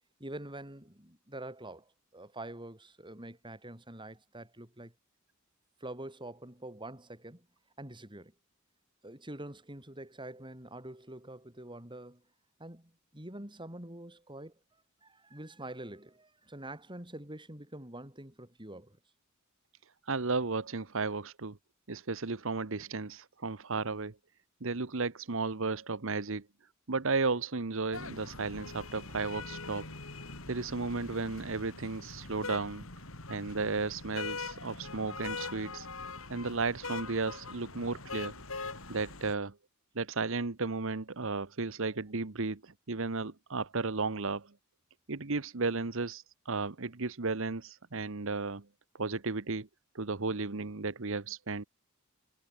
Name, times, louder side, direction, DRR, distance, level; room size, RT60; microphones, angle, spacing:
voice 1, 0.2-4.9 5.8-7.5 7.8-8.3 9.0-12.2 12.6-14.5 15.0-19.0, right 1 dB, 25° right, 6.5 m, -45 dB
voice 2, 20.0-21.6 21.9-24.1 24.6-26.4 26.9-29.9 30.5-32.9 33.3-35.9 36.3-38.3 38.9-39.5 39.9-44.5 45.1-48.6 49.0-49.7 49.9-51.6, right 3 dB, 65° right, 1.2 m, -34 dB
sound 1, 27.9-39.3, left 3 dB, 75° left, 7.3 m, -43 dB
head